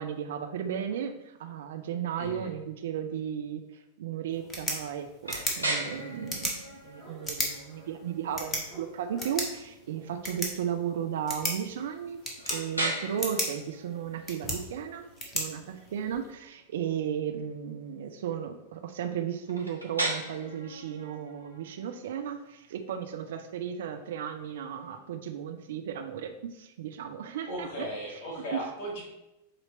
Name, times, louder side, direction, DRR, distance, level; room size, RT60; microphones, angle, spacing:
voice 1, 0.0-12.2 12.5-15.0 15.3-27.9 28.5-28.6, right 8 dB, 60° right, 7 dB, 0.6 m, -35 dB
voice 2, 2.2-2.5 27.5-29.0, equal, 50° left, 1 dB, 2.2 m, -36 dB
sound 1, 4.3-16.3, left 1 dB, 15° left, 1.4 m, -37 dB
sound 2, 5.2-25.0, right 1 dB, 90° right, 1.0 m, -40 dB
7.5 x 3.1 x 4.2 m, 0.92 s
figure-of-eight pair, 90°, 0 cm